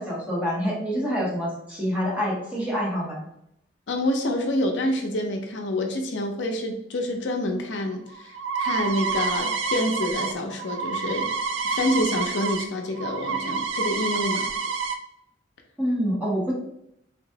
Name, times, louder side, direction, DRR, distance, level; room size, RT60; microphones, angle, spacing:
voice 1, 0.0-3.2 15.8-16.5, equal, 10° right, -5 dB, 1.1 m, -26 dB
voice 2, 3.9-8.3 8.6-11.3 11.6-14.5, left 1 dB, 70° left, 3 dB, 0.6 m, -27 dB
sound 1, 7.9-12.6 12.9-15.0, right 5 dB, 80° right, 0.4 m, -28 dB
3.5 x 2.9 x 2.7 m, 0.79 s
head